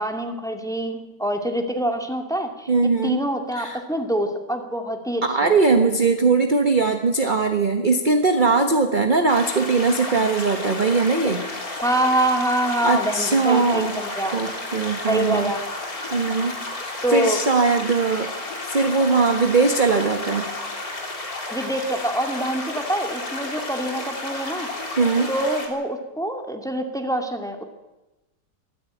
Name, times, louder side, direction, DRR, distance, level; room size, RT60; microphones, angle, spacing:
voice 1, 0.0-2.7 3.0-5.5 11.8-14.4 15.0-15.6 17.0-17.4 21.5-24.7 25.3-27.6, right 1 dB, ahead, 4 dB, 2.1 m, -25 dB
voice 2, 2.7-3.2 3.5-3.8 5.2-11.4 12.8-14.0 14.3-15.5 16.1-16.7 17.1-18.3 18.7-20.5 25.0-25.3, right 4 dB, 30° right, 6 dB, 1.3 m, -20 dB
sound 1, 9.3-25.7, left 2 dB, 50° left, 3.9 m, -32 dB
23.5 x 14.0 x 9.1 m, 1.0 s
omnidirectional pair, 1.9 m